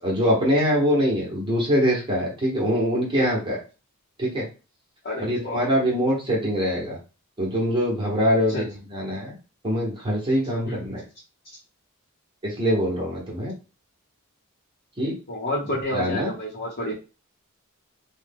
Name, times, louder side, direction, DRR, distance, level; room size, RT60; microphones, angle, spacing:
voice 1, 0.0-3.6 4.2-4.4 5.2-7.0 7.4-9.4 9.6-11.0 12.4-13.5 15.0-15.2 15.9-16.3, equal, 25° right, -4 dB, 0.9 m, -23 dB
voice 2, 5.0-5.6 8.5-8.6 10.6-10.8 15.3-16.9, left 1 dB, 45° left, -6 dB, 0.9 m, -29 dB
3.1 x 2.2 x 3.4 m, 0.33 s
head